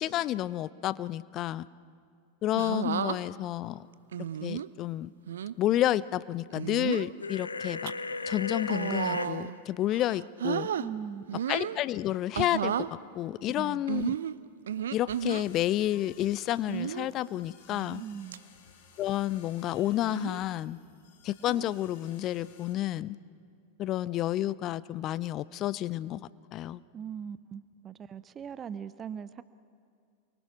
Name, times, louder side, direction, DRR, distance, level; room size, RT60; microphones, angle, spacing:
voice 1, 0.0-1.7 2.4-3.9 4.4-5.1 5.6-7.9 8.3-10.7 11.5-12.9 13.1-14.2 14.9-18.0 19.0-20.8 21.2-23.2 23.8-26.2 26.5-26.8, left 13 dB, 35° left, 19 dB, 0.5 m, -30 dB
sound 1, 2.6-3.2 4.1-4.7 5.3-5.5 6.5-7.1 7.6-7.9 8.6-9.6 9.9-10.9 11.3-11.8 12.3-12.9 13.9-15.4 16.7-17.1 17.7-18.0 18.3-18.4 20.0-20.4 21.5-21.8, right 9 dB, 65° right, 0.6 m, -33 dB
sound 2, 7.2-9.3, left 3 dB, 80° left, 0.9 m, -35 dB
voice 2, 10.8-11.4 13.5-13.9 18.0-18.4 26.9-29.4, right 8 dB, 25° right, 15 dB, 0.6 m, -40 dB
sound 3, 15.1-22.7, left 6 dB, 50° left, 3.2 m, -57 dB
29.0 x 23.5 x 6.0 m, 2.3 s
figure-of-eight pair, 90°, 0 cm